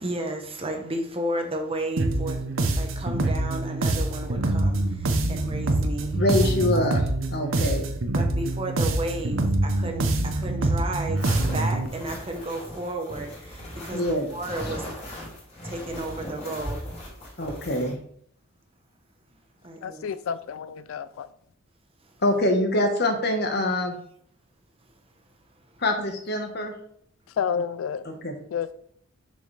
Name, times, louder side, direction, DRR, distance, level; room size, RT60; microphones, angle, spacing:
voice 1, 0.0-6.5 6.7-6.9 8.1-14.9 15.6-16.9 17.1-17.6 19.6-20.1 22.0-22.1 25.6-25.8, right 1 dB, 25° right, 1.0 m, -33 dB
sound 1, 2.0-11.9, right 2 dB, 70° right, 0.8 m, -25 dB
voice 2, 6.2-7.0 7.3-7.9 13.9-14.3 17.4-18.0 22.2-24.0 25.8-26.7 28.0-28.3, left 1 dB, 50° left, 1.2 m, -24 dB
sound 2, 11.2-17.9, equal, 30° left, 3.2 m, -38 dB
voice 3, 19.8-21.3 27.4-28.0 28.5-28.7, left 7 dB, 75° left, 0.3 m, -30 dB
7.0 x 6.2 x 3.3 m
head